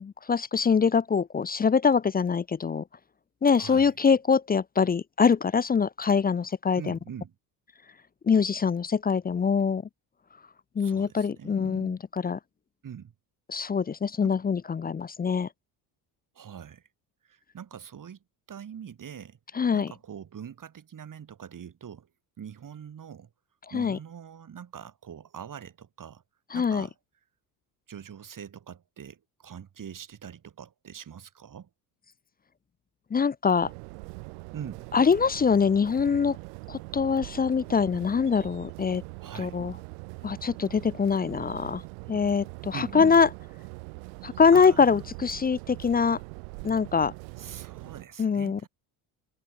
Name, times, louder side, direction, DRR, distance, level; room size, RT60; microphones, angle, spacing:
voice 1, 0.0-2.8 3.4-7.0 8.2-9.8 10.8-12.4 13.5-15.5 19.5-19.9 23.7-24.0 26.5-26.9 33.1-33.7 34.9-36.4 36.7-39.0 39.4-39.7 40.2-41.8 42.1-43.3 44.2-46.2 46.6-47.1 48.2-48.6, left 6 dB, 20° left, 0.6 m, -24 dB
voice 2, 3.6-3.9 6.8-7.3 10.8-12.0 12.8-13.1 14.2-14.3 16.3-16.8 17.2-18.2 18.5-19.4 19.7-22.1 22.4-23.3 23.7-26.2 26.5-26.9 27.9-31.7 34.5-34.9 39.2-39.6 42.7-43.2 44.5-45.1 47.4-48.7, right 8 dB, 40° right, 5.0 m, -43 dB
sound 1, 33.6-48.1, right 39 dB, 80° right, 1.3 m, -42 dB
hypercardioid pair, 70°, 47 cm